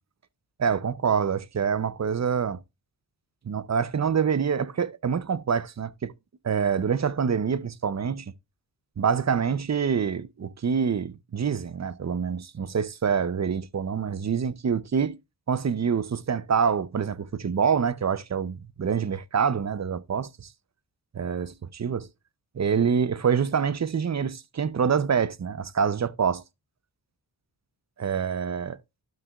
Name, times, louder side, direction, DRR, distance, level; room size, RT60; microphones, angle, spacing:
voice 1, 0.6-2.6 3.4-6.1 6.4-8.3 9.0-15.2 15.5-20.5 21.1-22.1 22.5-26.4 28.0-28.8, right 6 dB, 40° right, 0.6 m, -26 dB
12.0 x 6.0 x 2.4 m
cardioid pair, 50°, 44 cm